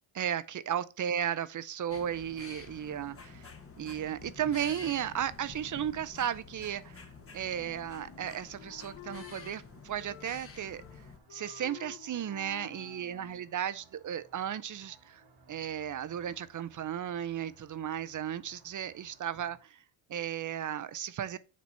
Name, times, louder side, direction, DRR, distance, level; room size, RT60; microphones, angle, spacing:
voice 1, 0.1-3.5 3.8-7.0 7.3-10.8 11.3-15.2 15.5-19.8 20.1-21.4, right 9 dB, 40° right, 0.6 m, -35 dB
sound 1, 1.9-11.2, left 5 dB, 30° left, 1.0 m, -49 dB
sound 2, 2.3-19.6, right 3 dB, 90° right, 2.8 m, -63 dB
Wind instrument woodwind instrument, 7.5-9.6 10.0-11.0 11.3-13.5, left 13 dB, 85° left, 0.8 m, -51 dB
7.4 x 3.0 x 5.3 m
cardioid pair, 90°, 48 cm